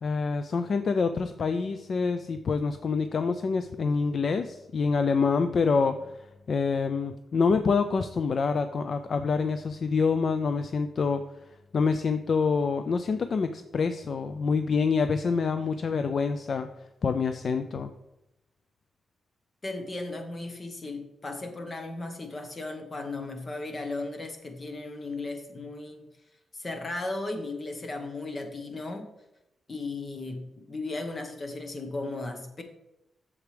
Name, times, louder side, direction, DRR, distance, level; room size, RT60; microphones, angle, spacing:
voice 1, 0.0-11.2 11.7-16.7 17.0-17.9, left 5 dB, 50° left, 9 dB, 0.4 m, -26 dB
voice 2, 19.6-26.1 26.5-29.1 29.7-32.6, left 2 dB, 30° left, 5 dB, 1.2 m, -36 dB
8.0 x 7.2 x 3.3 m, 0.91 s
wide cardioid pair, 125°, 0 cm